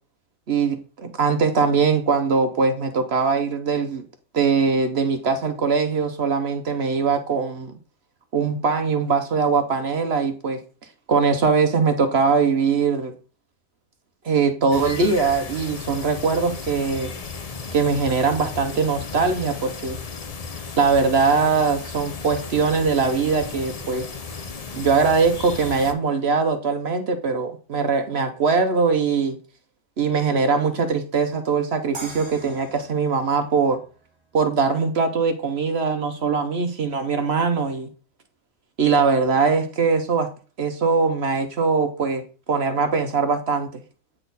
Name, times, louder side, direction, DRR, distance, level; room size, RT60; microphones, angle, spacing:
voice 1, 0.5-4.0 4.3-7.7 8.3-10.6 11.1-13.2 14.2-17.1 17.7-20.0 20.8-24.1 24.7-29.4 30.0-33.8 34.3-37.9 38.8-40.3 40.6-43.8, right 5 dB, 55° right, 7 dB, 0.8 m, -21 dB
sound 1, 14.7-25.9, left 4 dB, 85° left, 0.3 m, -35 dB
sound 2, 31.9-35.0, right 2 dB, 20° right, 1.3 m, -42 dB
8.9 x 4.1 x 3.9 m, 0.37 s
omnidirectional pair, 1.6 m